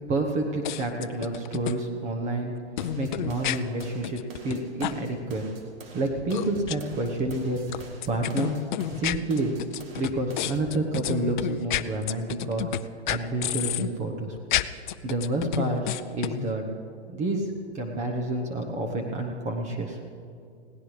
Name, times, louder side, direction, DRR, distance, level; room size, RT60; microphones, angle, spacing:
voice 1, 0.1-2.5 3.0-5.4 5.9-8.5 9.0-9.6 10.0-12.6 13.1-14.4 15.0-16.6 17.1-17.5 17.7-20.0, right 2 dB, 20° right, 3 dB, 1.0 m, -29 dB
sound 1, 0.6-1.7 2.8-4.6 4.8-4.9 6.3-6.8 7.7-12.8 13.1-13.9 14.4-16.5, left 13 dB, 45° left, 0.5 m, -30 dB
sound 2, 2.8-10.8, right 3 dB, 55° right, 2.1 m, -44 dB
20.5 x 17.0 x 3.3 m, 2.3 s
hypercardioid pair, 140°, 34 cm